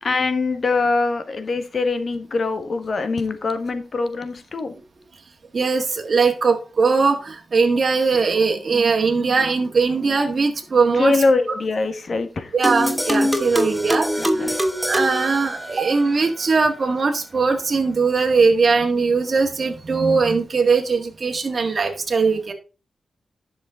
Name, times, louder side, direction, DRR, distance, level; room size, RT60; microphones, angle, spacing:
voice 1, 0.0-4.7 10.9-12.5 14.2-14.6, left 3 dB, 50° left, 9 dB, 1.4 m, -23 dB
voice 2, 5.5-11.1 12.5-14.5 14.9-22.5, right 4 dB, 45° right, 3 dB, 1.7 m, -20 dB
sound 1, 12.6-16.1, equal, ahead, 1.2 m, -23 dB
10.5 x 6.4 x 3.7 m, 0.32 s
wide cardioid pair, 100°, 0 cm